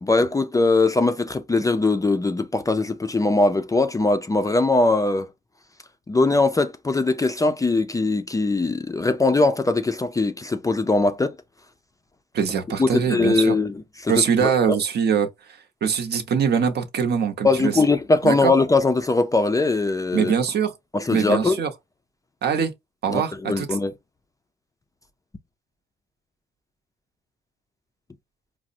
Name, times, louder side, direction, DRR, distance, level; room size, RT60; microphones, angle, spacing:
voice 1, 0.0-5.3 6.1-11.3 12.8-13.7 14.0-14.5 17.4-20.3 20.9-21.6 23.1-23.9, left 3 dB, 15° left, 0.4 m, -21 dB
voice 2, 12.3-13.6 14.1-15.3 15.8-17.7 18.2-18.5 20.1-20.7 21.1-21.7 22.4-22.7 23.0-23.7, right 7 dB, 55° right, 0.7 m, -22 dB
4.7 x 2.0 x 2.6 m
cardioid pair, 90°, 20 cm